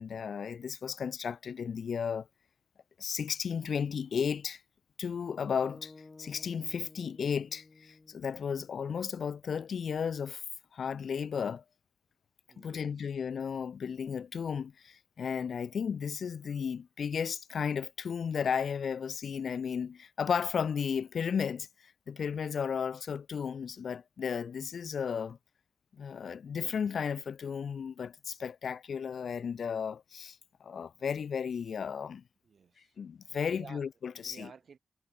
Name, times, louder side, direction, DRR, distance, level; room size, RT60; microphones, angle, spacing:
voice 1, 0.0-2.3 3.0-4.6 5.0-5.9 6.2-10.4 10.7-11.6 12.6-21.7 22.1-25.4 26.0-30.4 30.6-32.2 33.0-34.5, left 7 dB, 75° left, 0.6 m, -34 dB
sound 1, 5.6-9.9, left 3 dB, 30° left, 1.4 m, -55 dB
voice 2, 12.5-13.1 32.4-33.0 33.4-33.8 34.1-34.8, right 6 dB, 65° right, 4.6 m, -53 dB
wide cardioid pair, 100°, 0 cm